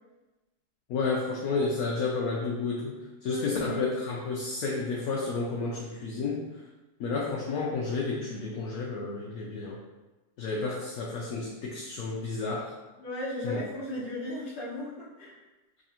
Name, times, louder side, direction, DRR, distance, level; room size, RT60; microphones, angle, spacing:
voice 1, 0.9-3.0 3.2-6.4 7.0-9.8 10.4-12.7 13.4-13.6, left 4 dB, 70° left, -2 dB, 0.9 m, -31 dB
voice 2, 3.2-3.9 13.0-15.4, left 1 dB, 35° left, -8 dB, 1.2 m, -36 dB
3.7 x 3.3 x 2.8 m, 1.1 s
omnidirectional pair, 1.8 m